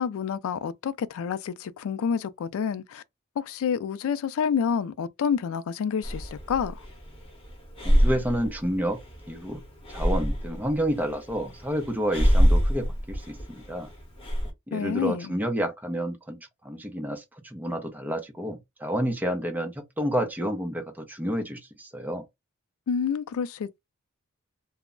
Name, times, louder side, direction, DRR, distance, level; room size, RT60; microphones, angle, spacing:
voice 1, 0.0-3.0 3.4-6.8 14.7-15.3 22.9-23.8, left 7 dB, 70° left, 0.3 m, -28 dB
Breathing, 6.0-14.5, equal, 25° left, 1.0 m, -26 dB
voice 2, 7.8-9.0 9.3-9.6 9.9-13.4 13.7-13.9 14.7-22.2, equal, 10° right, 0.6 m, -30 dB
2.2 x 2.0 x 3.6 m
head